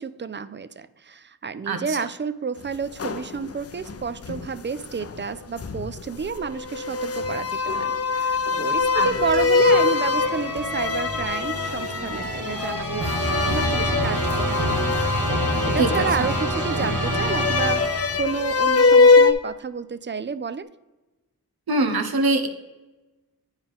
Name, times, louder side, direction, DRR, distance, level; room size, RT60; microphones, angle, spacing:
voice 1, 0.0-14.7 15.3-20.7, right 5 dB, 30° right, 14 dB, 0.4 m, -30 dB
voice 2, 1.7-2.0 8.9-9.1 15.8-16.3 21.7-22.5, right 2 dB, 80° right, 6 dB, 0.9 m, -23 dB
sound 1, 2.7-5.3 5.6-19.3, left 4 dB, 40° left, 0.6 m, -23 dB
sound 2, 8.9-18.4, right 1 dB, 60° right, 1.6 m, -28 dB
8.9 x 4.9 x 3.6 m, 1.1 s
cardioid pair, 50°, 36 cm